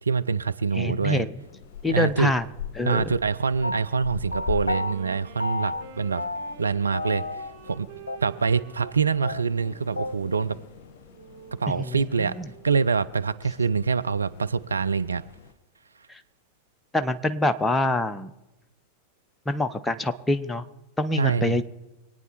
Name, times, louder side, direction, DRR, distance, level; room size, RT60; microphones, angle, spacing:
voice 1, 0.0-1.3 1.9-2.3 2.8-6.2 6.6-7.9 8.2-10.6 11.6-12.3 12.6-15.2 21.2-21.6, right 5 dB, 75° right, 0.5 m, -25 dB
voice 2, 0.8-1.3 1.8-2.5 2.8-3.1 11.8-12.5 16.1-16.2 16.9-18.3 19.5-20.6 21.0-21.6, left 1 dB, 10° left, 0.9 m, -25 dB
sound 1, 1.4-15.5, left 8 dB, 45° left, 1.4 m, -43 dB
sound 2, 3.6-5.0 5.4-5.9 6.2-6.7 6.9-7.8 8.1-8.2 8.5-8.6 8.8-8.9 9.2-10.2, left 2 dB, 80° left, 0.4 m, -31 dB
Wind instrument woodwind instrument, 4.1-12.8, right 7 dB, 55° right, 2.1 m, -47 dB
25.0 x 9.4 x 4.3 m
figure-of-eight pair, 90°, 0 cm